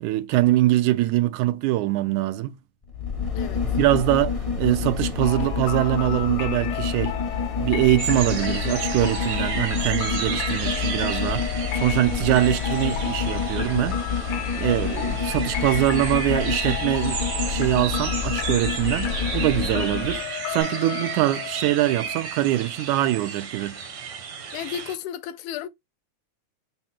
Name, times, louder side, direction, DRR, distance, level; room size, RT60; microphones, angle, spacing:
voice 1, 0.0-2.6 3.8-7.1 7.6-11.5 11.7-14.0 14.5-17.2 17.5-20.2 20.5-23.8, right 16 dB, 90° right, 2.0 m, -23 dB
sound 1, 2.8-20.2 20.6-20.7, left 6 dB, 45° left, 0.4 m, -28 dB
sound 2, 5.2-22.8, left 11 dB, 75° left, 1.5 m, -34 dB
sound 3, 8.0-25.0, right 6 dB, 65° right, 1.0 m, -33 dB
voice 2, 24.5-25.7, left 10 dB, 90° left, 2.0 m, -33 dB
5.6 x 2.0 x 4.3 m
omnidirectional pair, 3.4 m